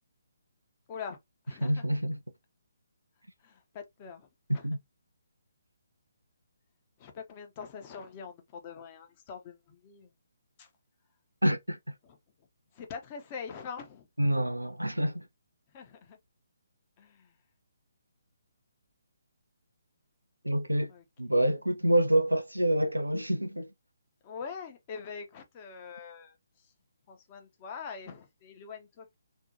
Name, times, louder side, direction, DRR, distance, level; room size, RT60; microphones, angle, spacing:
voice 1, 0.9-1.2 1.4-1.8 3.4-4.6 7.0-10.1 10.6-10.7 12.0-12.2 12.7-14.1 15.7-16.2 17.0-17.3 20.9-21.3 24.2-26.7 27.1-29.2, left 6 dB, 25° left, 0.6 m, -44 dB
voice 2, 1.6-2.2 4.5-4.8 11.4-12.0 14.2-15.3 20.4-20.9 21.2-23.7, right 1 dB, 85° right, 0.4 m, -27 dB
2.6 x 2.2 x 2.5 m
figure-of-eight pair, 140°, 0 cm